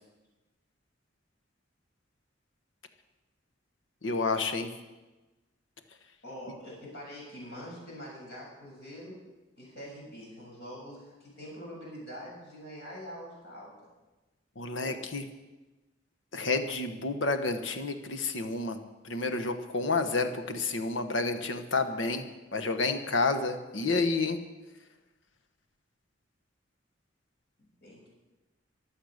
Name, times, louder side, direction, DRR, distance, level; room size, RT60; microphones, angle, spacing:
voice 1, 4.0-4.7 14.6-15.2 16.3-18.8 19.0-22.2 22.5-24.4, left 3 dB, 90° left, 9 dB, 1.3 m, -30 dB
voice 2, 6.2-9.2 9.6-13.7 27.6-28.1, equal, 60° left, -3 dB, 7.5 m, -44 dB
24.0 x 8.0 x 6.6 m, 1.1 s
head